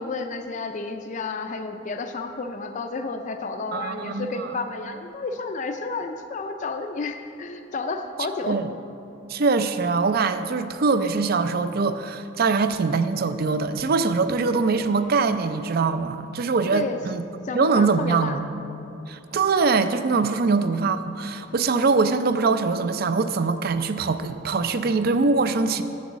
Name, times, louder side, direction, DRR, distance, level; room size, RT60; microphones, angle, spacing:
voice 1, 0.0-8.6 16.7-17.0 17.4-18.4, left 3 dB, 40° left, 6 dB, 0.4 m, -31 dB
voice 2, 3.7-4.6 8.5-8.7 9.3-17.2 17.5-18.5 19.1-25.8, right 4 dB, 50° right, 11 dB, 0.4 m, -23 dB
8.3 x 7.0 x 7.3 m, 2.7 s
head